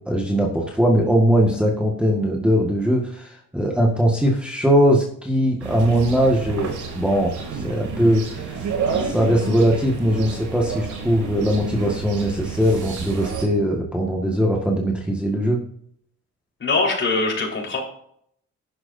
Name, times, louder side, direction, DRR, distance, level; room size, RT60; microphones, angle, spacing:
voice 1, 0.1-8.6 9.0-15.6, equal, 5° right, -2 dB, 1.8 m, -20 dB
sound 1, 5.6-13.4, right 5 dB, 80° right, 2.8 m, -30 dB
voice 2, 16.6-17.8, left 3 dB, 40° left, -1 dB, 4.6 m, -22 dB
12.5 x 11.0 x 2.7 m, 0.65 s
cardioid pair, 90°, 30 cm